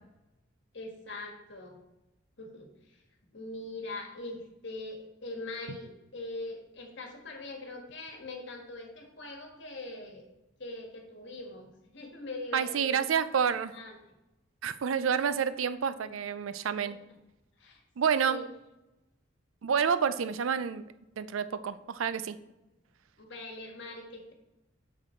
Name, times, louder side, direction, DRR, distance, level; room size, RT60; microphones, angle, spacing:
voice 1, 0.7-1.8 2.4-2.7 3.3-10.3 10.6-13.2 13.4-14.0 16.9-17.0 17.6-17.8 18.1-18.5 23.2-24.3, left 2 dB, 60° left, 2 dB, 1.5 m, -42 dB
voice 2, 12.5-13.7 14.6-17.0 18.0-18.4 19.6-20.8 21.2-22.4, right 7 dB, 85° right, 13 dB, 0.4 m, -29 dB
6.3 x 6.1 x 4.4 m, 0.97 s
head